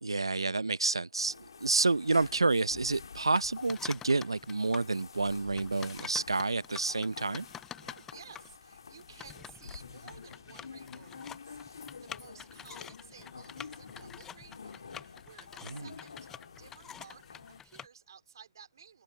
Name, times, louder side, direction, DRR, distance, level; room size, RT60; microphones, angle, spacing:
voice 1, 0.0-7.5 15.6-15.8, right 3 dB, 80° right, 0.9 m, -29 dB
sound 1, 1.2-17.6, left 5 dB, 65° left, 3.2 m, -49 dB
voice 2, 1.3-1.6 7.8-19.0, right 7 dB, 55° right, 4.9 m, -55 dB
sound 2, 3.2-4.9 5.3-17.9, left 9 dB, 15° left, 0.6 m, -48 dB
figure-of-eight pair, 135°, 3 cm